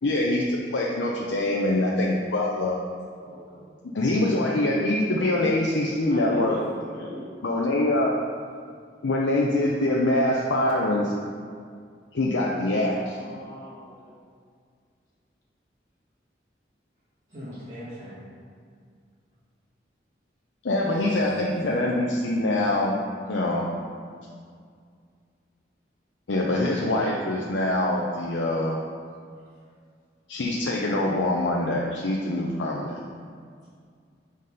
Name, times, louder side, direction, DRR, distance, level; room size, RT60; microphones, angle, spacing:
voice 1, 0.0-2.8 3.9-6.5 7.4-8.1 9.0-11.1 12.1-13.2 20.6-23.0 23.3-23.6 26.3-28.8 30.3-32.9, left 1 dB, 85° left, -3 dB, 0.6 m, -24 dB
voice 2, 3.2-3.7 6.1-7.3 13.0-14.2, left 1 dB, 50° left, -5 dB, 1.3 m, -39 dB
voice 3, 17.3-18.2 20.9-21.4 26.5-26.6, equal, 40° right, -13 dB, 1.5 m, -40 dB
5.4 x 4.0 x 5.3 m, 2.1 s
head